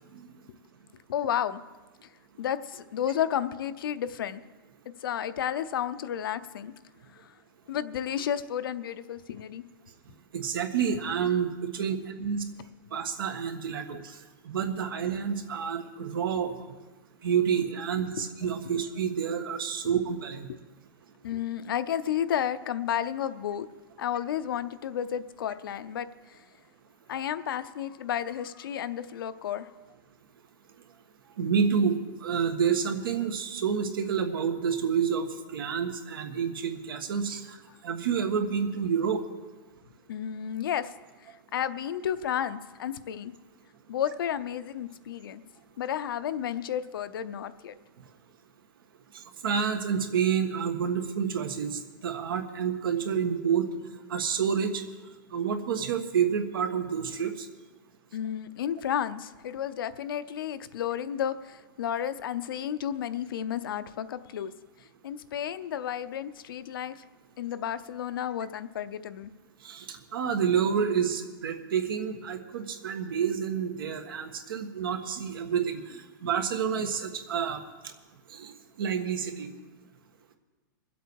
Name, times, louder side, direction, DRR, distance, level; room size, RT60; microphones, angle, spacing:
voice 1, 1.1-1.6 2.0-2.1 2.4-4.4 5.0-6.7 7.2-7.3 7.7-9.6 13.9-14.0 20.5-20.6 21.2-23.7 24.0-26.4 27.1-29.7 40.1-40.9 41.3-43.3 43.9-45.4 45.8-47.7 58.1-64.5 65.0-67.0 67.4-69.3, left 9 dB, 80° left, 12 dB, 0.7 m, -32 dB
voice 2, 10.3-12.4 12.9-14.2 14.4-16.5 17.2-20.5 31.4-37.6 37.8-39.2 49.4-53.7 54.1-54.8 55.3-57.5 69.6-77.6 78.3-79.5, right 7 dB, 85° right, 7 dB, 1.5 m, -29 dB
23.5 x 8.1 x 4.7 m, 1.2 s
supercardioid pair, 165°, 11 cm